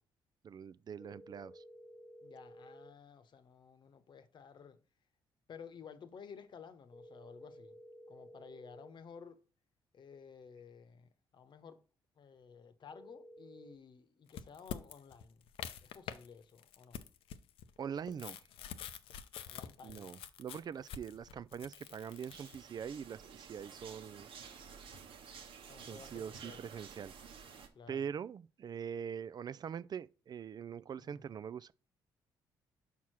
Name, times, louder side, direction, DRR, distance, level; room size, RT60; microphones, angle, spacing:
voice 1, 0.4-1.6 17.8-18.4 19.8-24.3 25.9-27.1 27.9-31.7, right 7 dB, 45° right, 0.3 m, -43 dB
sound 1, 1.0-2.9 6.9-8.9 12.9-13.8, equal, 20° left, 0.8 m, -54 dB
voice 2, 2.2-4.8 5.5-7.8 8.1-9.4 9.9-11.8 12.2-15.4 15.8-17.0 19.5-20.2 25.6-26.6 27.7-28.1 31.0-31.2, left 6 dB, 55° left, 1.0 m, -54 dB
sound 2, 14.3-16.3 16.6-22.6, left 9 dB, 75° left, 0.6 m, -46 dB
sound 3, 21.8-27.7, right 6 dB, 70° right, 1.2 m, -52 dB
5.8 x 4.7 x 6.0 m
supercardioid pair, 65°, 9 cm